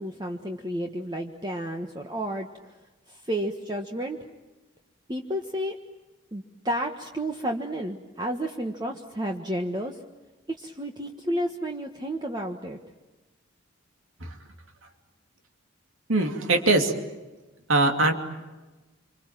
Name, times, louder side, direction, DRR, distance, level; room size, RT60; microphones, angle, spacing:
voice 1, 0.0-2.8 3.1-4.3 5.1-5.8 6.3-10.0 10.5-12.8, right 1 dB, 20° right, 2 dB, 1.5 m, -31 dB
voice 2, 16.1-16.9 17.7-18.1, right 2 dB, 75° right, 4 dB, 2.9 m, -22 dB
27.0 x 26.0 x 7.6 m, 1.2 s
head